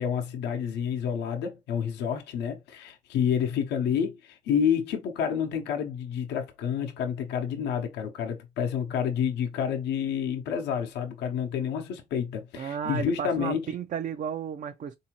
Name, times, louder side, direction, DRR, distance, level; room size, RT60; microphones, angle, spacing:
voice 1, 0.0-13.7, left 8 dB, 80° left, 0.7 m, -29 dB
voice 2, 12.6-15.0, right 8 dB, 50° right, 0.4 m, -33 dB
3.6 x 2.7 x 2.8 m
supercardioid pair, 70°, 18 cm